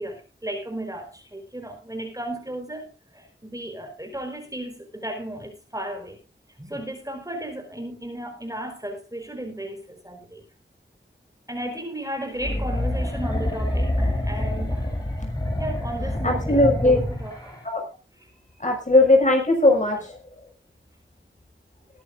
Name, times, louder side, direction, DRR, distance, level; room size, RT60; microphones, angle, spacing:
voice 1, 0.0-6.2 6.6-10.4 11.5-14.9 15.6-17.5, right 1 dB, 15° right, 3 dB, 4.5 m, -35 dB
sound 1, 12.4-17.6, left 1 dB, 20° left, 6.0 m, -27 dB
voice 2, 16.2-17.0 17.6-17.8 18.6-20.2, left 2 dB, 35° left, 2 dB, 6.1 m, -19 dB
21.5 x 10.5 x 2.6 m, 0.33 s
wide cardioid pair, 60°, 21 cm